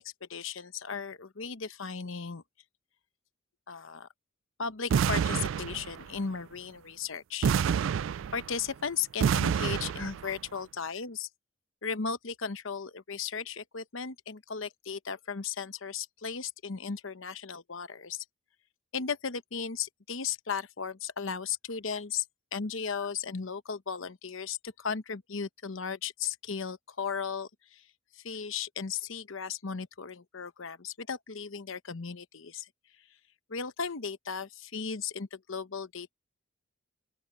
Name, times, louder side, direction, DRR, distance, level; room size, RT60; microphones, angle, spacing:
voice 1, 0.0-2.4 3.7-4.1 4.6-7.5 8.3-11.3 11.8-18.2 18.9-22.2 22.5-27.8 28.1-32.7 33.5-36.1, left 6 dB, 70° left, 0.9 m, -36 dB
sound 1, 4.9-6.2 7.4-8.7 9.2-10.3, right 7 dB, 65° right, 0.3 m, -28 dB
open air
head